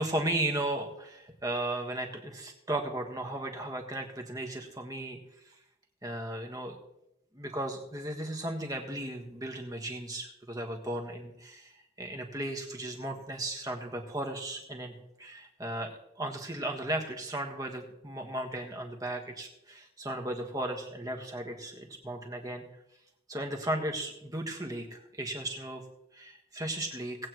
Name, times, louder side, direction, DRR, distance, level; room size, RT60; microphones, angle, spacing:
voice 1, 0.0-5.2 5.4-5.6 6.0-6.8 7.3-22.6 23.3-25.8 26.1-27.2, right 1 dB, 20° right, 3 dB, 1.5 m, -35 dB
19.0 x 8.6 x 3.1 m, 0.82 s
head